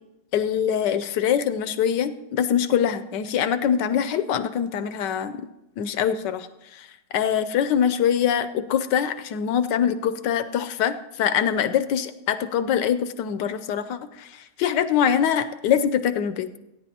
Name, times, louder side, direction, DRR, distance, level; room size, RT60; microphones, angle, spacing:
voice 1, 0.3-5.4 5.8-6.5 6.7-6.9 7.1-14.3 14.6-16.5, left 8 dB, 75° left, 11 dB, 1.2 m, -23 dB
19.0 x 10.0 x 2.8 m, 0.91 s
omnidirectional pair, 2.0 m